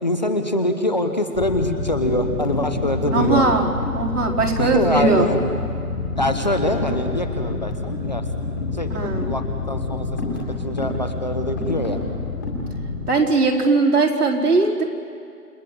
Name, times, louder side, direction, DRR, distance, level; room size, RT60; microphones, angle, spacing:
voice 1, 0.0-3.4 4.6-5.4 6.2-8.2 8.7-12.0, left 1 dB, 30° left, 6 dB, 1.0 m, -24 dB
sound 1, 1.3-13.1, left 3 dB, 10° left, 2.1 m, -27 dB
voice 2, 3.1-5.3 8.9-9.3 13.1-14.8, right 3 dB, 75° right, -1 dB, 4.9 m, -19 dB
29.0 x 19.5 x 7.8 m, 2.4 s
hypercardioid pair, 175°, 46 cm